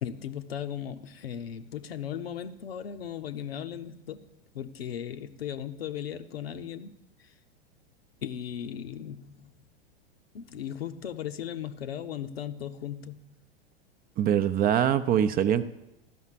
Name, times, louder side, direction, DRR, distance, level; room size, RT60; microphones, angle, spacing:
voice 1, 0.0-4.3 4.5-7.3 8.2-9.5 10.3-13.3, left 9 dB, 80° left, 9 dB, 0.8 m, -37 dB
voice 2, 14.2-15.6, right 9 dB, 30° right, 12 dB, 0.6 m, -23 dB
12.5 x 5.7 x 7.4 m, 0.91 s
hypercardioid pair, 95°, 30 cm